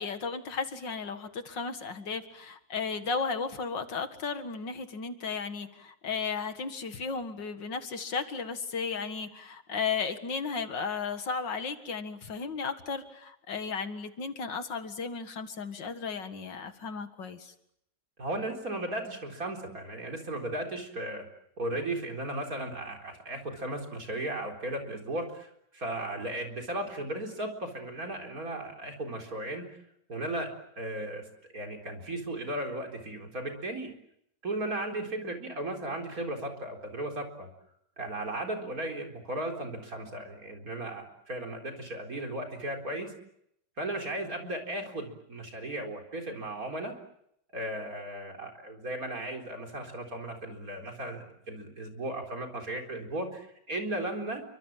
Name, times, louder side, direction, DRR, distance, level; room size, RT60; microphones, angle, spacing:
voice 1, 0.0-17.5, left 5 dB, 80° left, 8 dB, 2.5 m, -34 dB
voice 2, 18.2-21.2 21.6-29.7 30.1-31.2 31.5-33.9 34.4-37.5 38.0-43.1 43.8-46.9 47.5-54.4, right 1 dB, 50° right, 2 dB, 4.6 m, -36 dB
29.0 x 24.5 x 7.5 m, 0.76 s
omnidirectional pair, 1.9 m